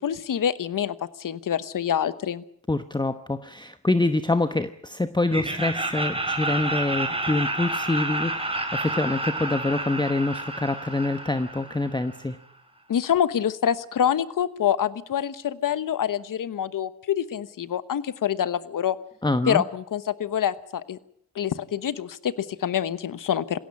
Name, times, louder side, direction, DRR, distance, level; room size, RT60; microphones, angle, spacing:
voice 1, 0.0-2.4 12.9-19.0 19.5-21.0 21.3-23.6, left 9 dB, 65° left, 15 dB, 1.2 m, -26 dB
voice 2, 2.7-12.4 19.2-19.6, left 2 dB, 15° left, 10 dB, 1.0 m, -26 dB
Laughter, 5.3-12.2, right 2 dB, 15° right, 4.3 m, -30 dB
20.5 x 16.5 x 8.7 m, 0.68 s
cardioid pair, 55°, 35 cm